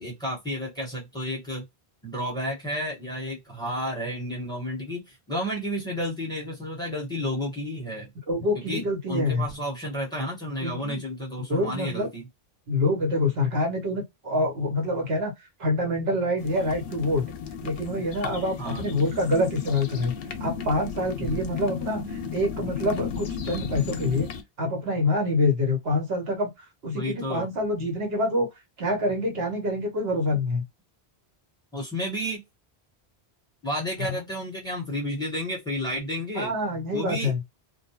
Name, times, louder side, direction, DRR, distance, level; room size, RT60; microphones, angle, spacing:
voice 1, 0.0-1.6 2.0-8.1 8.7-12.2 18.6-18.8 21.2-21.4 26.9-27.5 31.7-32.4 33.6-36.5 36.9-37.6, equal, 5° left, 1.2 m, -31 dB
voice 2, 8.3-9.5 10.6-11.0 11.5-12.1 12.7-15.3 15.6-17.2 17.6-20.1 20.4-24.3 24.6-26.5 26.8-28.5 28.8-30.6 36.3-37.4, left 1 dB, 70° right, 1.1 m, -26 dB
sound 1, 16.4-24.4, left 6 dB, 60° left, 0.7 m, -34 dB
2.2 x 2.2 x 2.9 m
omnidirectional pair, 1.1 m